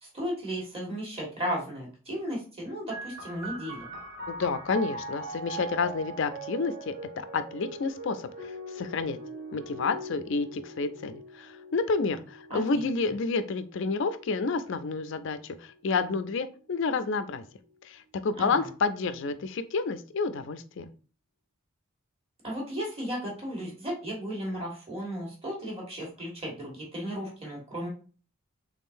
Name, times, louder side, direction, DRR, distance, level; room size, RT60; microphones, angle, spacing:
voice 1, 0.0-3.9 12.5-12.8 18.4-18.7 22.4-27.9, equal, 25° right, -3 dB, 1.5 m, -35 dB
sound 1, 2.9-16.1 17.0-17.8, right 2 dB, 60° right, 0.9 m, -42 dB
voice 2, 4.3-9.2 9.5-17.4 17.8-20.9, left 4 dB, 60° left, 11 dB, 0.4 m, -30 dB
3.6 x 3.6 x 2.6 m, 0.38 s
head